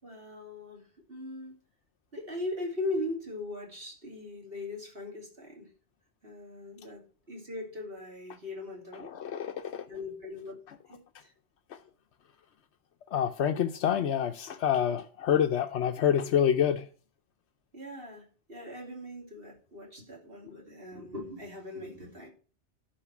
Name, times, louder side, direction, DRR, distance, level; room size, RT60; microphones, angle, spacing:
voice 1, 0.0-1.5 2.1-5.7 6.2-9.1 9.9-10.6 10.9-11.3 17.7-22.3, left 2 dB, 60° right, 3.3 m, -39 dB
voice 2, 9.0-9.9 10.7-10.8 11.7-11.8 13.1-16.9, left 9 dB, 85° left, 1.0 m, -27 dB
11.5 x 5.1 x 5.9 m
omnidirectional pair, 1.1 m